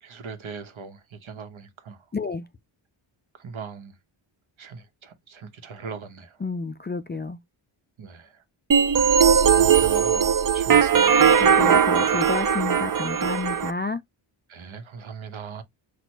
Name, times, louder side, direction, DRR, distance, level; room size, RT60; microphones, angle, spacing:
voice 1, 0.0-2.0 3.4-4.0 4.6-6.4 8.0-8.4 9.5-11.4 14.5-15.6, right 5 dB, 70° right, 1.2 m, -39 dB
voice 2, 2.1-2.4 6.4-7.4 11.4-14.0, left 3 dB, 25° left, 0.3 m, -30 dB
sound 1, 8.7-13.7, right 7 dB, 45° right, 0.6 m, -19 dB
6.1 x 2.5 x 2.9 m
wide cardioid pair, 115°, 50 cm